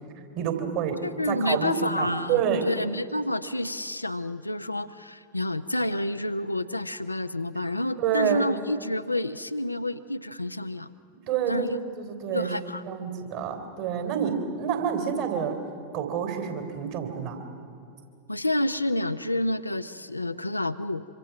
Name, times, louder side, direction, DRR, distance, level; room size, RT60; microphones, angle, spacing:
voice 1, 0.4-1.0 1.3-2.7 8.0-8.5 11.3-11.7 12.0-12.5 12.9-15.5 15.9-17.4, right 8 dB, 50° right, 5 dB, 3.5 m, -28 dB
voice 2, 1.0-10.9 11.5-11.8 12.3-12.8 18.3-21.1, left 1 dB, 85° left, 10 dB, 0.6 m, -29 dB
25.5 x 25.5 x 5.9 m, 2.4 s
figure-of-eight pair, 90°, 0 cm